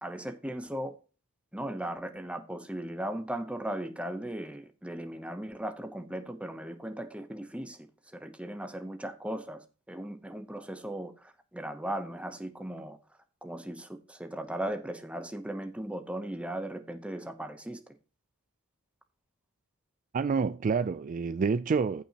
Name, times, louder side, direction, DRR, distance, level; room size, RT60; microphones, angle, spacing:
voice 1, 0.0-0.9 1.5-7.9 8.1-13.0 13.4-17.8, right 1 dB, 5° right, 0.9 m, -37 dB
voice 2, 20.1-22.0, right 5 dB, 35° right, 0.3 m, -28 dB
15.0 x 5.6 x 3.0 m
head